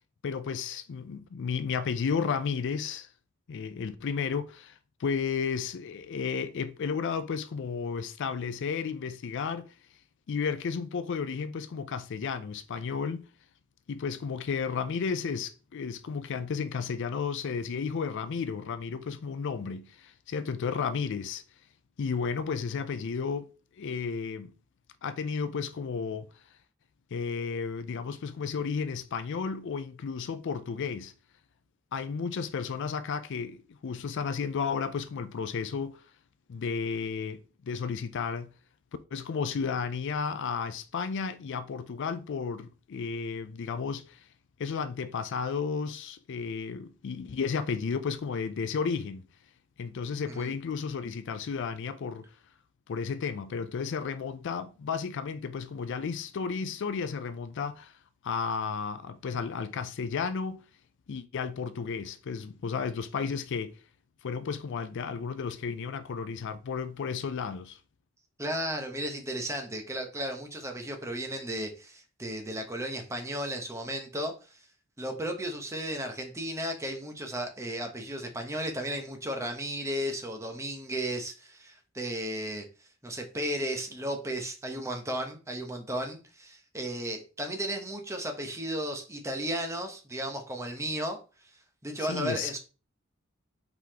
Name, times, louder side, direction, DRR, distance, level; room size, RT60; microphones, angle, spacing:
voice 1, 0.2-3.1 3.5-9.7 10.3-13.3 13.9-21.4 22.0-23.5 23.8-24.5 25.0-26.3 27.1-31.1 31.9-36.0 36.5-38.5 39.1-44.3 44.6-49.2 49.8-52.3 52.9-57.9 58.2-60.6 61.1-63.8 64.2-67.8 92.0-92.6, left 5 dB, 60° left, 0.4 m, -33 dB
voice 2, 68.4-74.6 75.0-82.6 83.0-91.2 91.8-92.6, right 1 dB, 15° right, 0.9 m, -34 dB
4.7 x 4.0 x 2.8 m
head